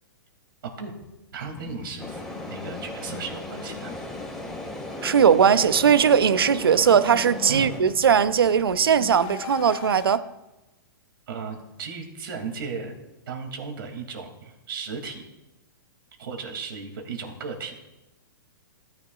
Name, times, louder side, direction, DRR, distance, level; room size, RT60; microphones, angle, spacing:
voice 1, 0.6-0.9 1.3-3.9 7.5-7.7 11.3-13.0 13.3-15.2 16.2-17.8, right 5 dB, 70° right, 2.7 m, -35 dB
sound 1, 1.4-10.2, left 10 dB, 40° left, 1.0 m, -41 dB
sound 2, 2.0-7.8, left 1 dB, 5° left, 1.8 m, -37 dB
voice 2, 5.0-10.2, right 7 dB, 90° right, 0.6 m, -19 dB
17.5 x 9.9 x 2.4 m
hypercardioid pair, 130°, 12 cm